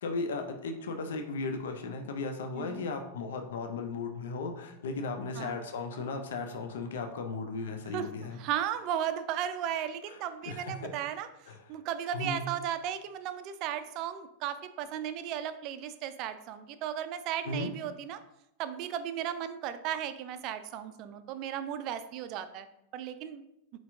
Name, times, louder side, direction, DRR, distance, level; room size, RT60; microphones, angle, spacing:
voice 1, 0.0-8.4 10.5-10.9 11.5-11.6 12.1-12.4 17.5-17.7, left 3 dB, 60° left, 5 dB, 0.5 m, -36 dB
voice 2, 7.9-11.3 11.7-18.2 18.6-22.7 22.9-23.4, right 10 dB, 40° right, 12 dB, 0.4 m, -35 dB
4.5 x 4.2 x 2.6 m, 0.84 s
figure-of-eight pair, 90°, 0 cm